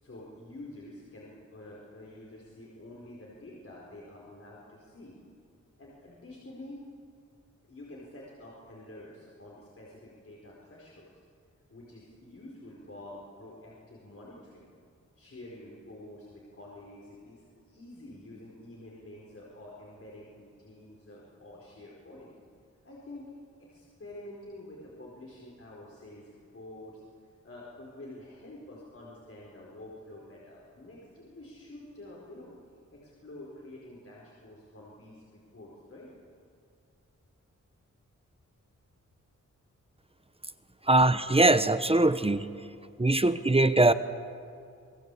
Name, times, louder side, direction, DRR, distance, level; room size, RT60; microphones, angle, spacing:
voice 1, 0.0-5.1 5.8-6.8 7.6-11.1 11.7-14.7 15.2-22.3 22.8-23.3 23.6-32.6 32.9-36.1 40.8-40.9 43.0-43.1, left 1 dB, 50° left, -4 dB, 4.5 m, -48 dB
voice 2, 40.8-42.5 43.0-43.9, right 2 dB, 20° right, 12 dB, 0.9 m, -22 dB
27.0 x 20.0 x 8.4 m, 2.4 s
wide cardioid pair, 100°, 30 cm